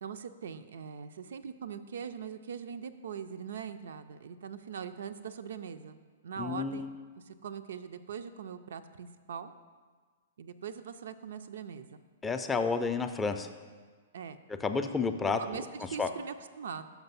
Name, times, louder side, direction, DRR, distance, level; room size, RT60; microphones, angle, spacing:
voice 1, 0.0-6.0 6.2-6.9 7.3-9.5 10.4-12.0 14.1-14.4 15.2-16.8, right 7 dB, 65° right, 10 dB, 0.3 m, -41 dB
voice 2, 6.4-6.9 12.2-13.5 14.6-15.6 16.0-16.1, left 4 dB, 15° left, 7 dB, 0.4 m, -30 dB
5.9 x 5.2 x 5.4 m, 1.5 s
figure-of-eight pair, 110°, 0 cm